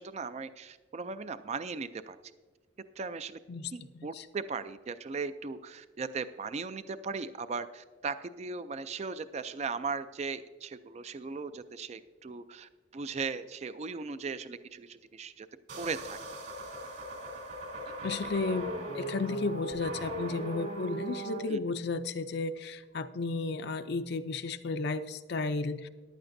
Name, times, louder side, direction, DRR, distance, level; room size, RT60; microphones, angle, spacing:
voice 1, 0.0-2.2 3.0-3.4 3.7-15.5 15.8-16.2 21.5-21.6, right 4 dB, 35° right, 13 dB, 0.3 m, -38 dB
sound 1, 15.7-21.4, right 1 dB, 55° right, 2.7 m, -39 dB
voice 2, 18.0-25.9, left 3 dB, 55° left, 9 dB, 0.5 m, -33 dB
14.5 x 11.0 x 2.6 m, 1.4 s
head